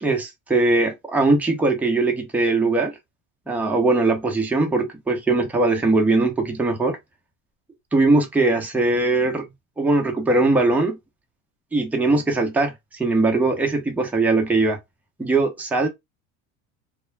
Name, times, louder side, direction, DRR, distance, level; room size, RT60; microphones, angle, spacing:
voice 1, 0.0-2.9 3.5-7.0 7.9-9.5 9.8-11.0 11.7-14.8 15.2-15.9, right 2 dB, 5° right, 0.6 m, -20 dB
2.2 x 2.0 x 3.2 m
supercardioid pair, 115°, 39 cm